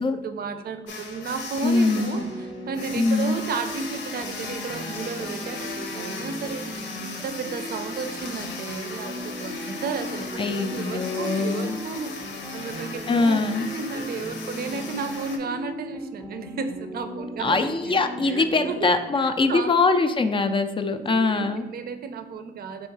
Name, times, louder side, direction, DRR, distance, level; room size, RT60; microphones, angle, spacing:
voice 1, 0.0-6.7 7.0-12.1 12.5-17.6 17.9-18.0 18.3-18.9 19.2-19.9 20.9-22.9, right 5 dB, 50° right, 9 dB, 0.5 m, -33 dB
sound 1, 0.9-15.4, left 4 dB, 70° left, 0.8 m, -37 dB
voice 2, 1.6-2.3 3.0-3.3 10.4-11.8 13.1-13.7 17.4-21.7, left 3 dB, 25° left, 9 dB, 0.4 m, -23 dB
sound 2, 2.0-18.8, equal, ahead, 0.8 m, -38 dB
3.6 x 3.1 x 4.6 m, 1.0 s
cardioid pair, 90°, 20 cm